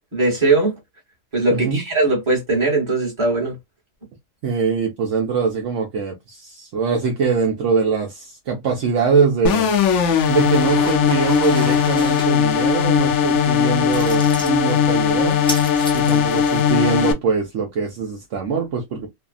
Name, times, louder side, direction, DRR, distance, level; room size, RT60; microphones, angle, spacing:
voice 1, 0.1-0.7 1.3-3.6, right 3 dB, 20° right, 1.3 m, -19 dB
voice 2, 1.5-1.8 4.4-9.7 10.3-15.4 15.9-19.1, right 5 dB, 65° right, 1.0 m, -22 dB
sound 1, 9.4-17.1, left 7 dB, 65° left, 0.8 m, -18 dB
sound 2, 10.1-12.3 13.9-14.5 15.3-16.8, equal, 5° left, 0.4 m, -33 dB
3.1 x 2.1 x 2.4 m
omnidirectional pair, 1.5 m